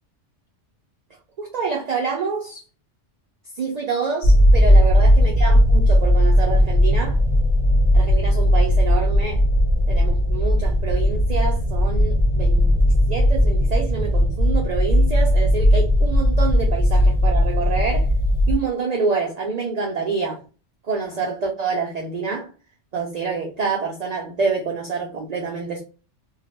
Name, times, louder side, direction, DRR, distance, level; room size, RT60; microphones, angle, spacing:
voice 1, 1.4-2.6 3.5-7.2 7.9-9.4 9.9-12.8 13.1-18.1 18.5-20.4 20.8-22.5 22.9-25.8, right 5 dB, 65° right, 0.4 m, -27 dB
sound 1, 4.2-18.6, equal, 55° left, 0.8 m, -17 dB
2.2 x 2.0 x 3.0 m
omnidirectional pair, 1.2 m